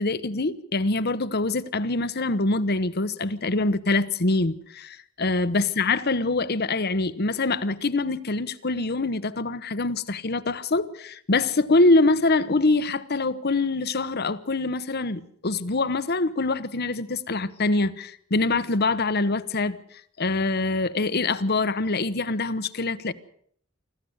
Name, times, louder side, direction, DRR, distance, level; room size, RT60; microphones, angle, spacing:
voice 1, 0.0-19.8 20.2-23.1, left 3 dB, 50° left, 1.0 m, -24 dB
25.5 x 14.5 x 8.0 m
head